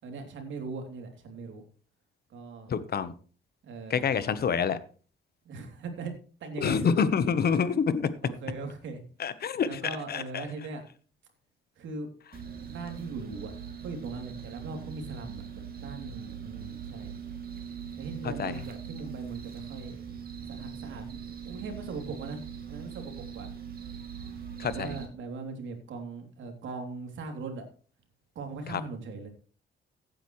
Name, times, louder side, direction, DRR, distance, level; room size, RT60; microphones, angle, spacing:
voice 1, 0.0-1.6 2.3-2.7 3.6-4.2 5.4-6.9 8.2-9.0 9.6-10.8 11.7-12.1 12.7-13.5 13.8-17.1 18.0-22.4 22.7-23.5 24.6-27.7 28.3-29.3, right 4 dB, 70° right, 4 dB, 3.1 m, -40 dB
voice 2, 2.7-3.1 3.9-4.8 6.6-8.1 9.2-9.7 10.1-10.4 18.4-18.6 24.6-24.9 28.7-28.8, left 6 dB, 50° left, 14 dB, 1.1 m, -27 dB
sound 1, 12.3-25.1, right 7 dB, 50° right, 2.8 m, -41 dB
15.5 x 9.2 x 3.2 m, 0.40 s
cardioid pair, 90°, 20 cm